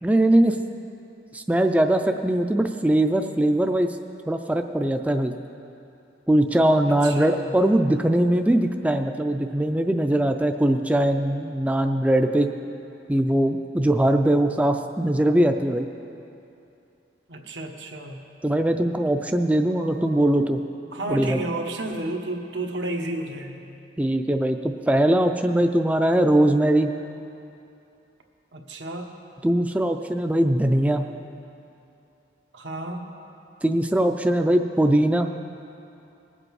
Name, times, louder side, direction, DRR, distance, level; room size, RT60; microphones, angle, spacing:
voice 1, 0.0-0.6 1.3-4.0 4.3-5.3 6.3-12.5 13.1-15.9 18.4-20.6 21.1-21.4 24.0-26.9 29.4-31.1 33.6-35.3, right 1 dB, 10° right, 5 dB, 0.4 m, -21 dB
voice 2, 6.9-7.5 17.3-18.2 19.7-20.4 20.9-23.6 28.5-29.1 32.5-33.1, right 2 dB, 85° right, 2 dB, 1.2 m, -32 dB
20.0 x 7.7 x 4.8 m, 2.7 s
head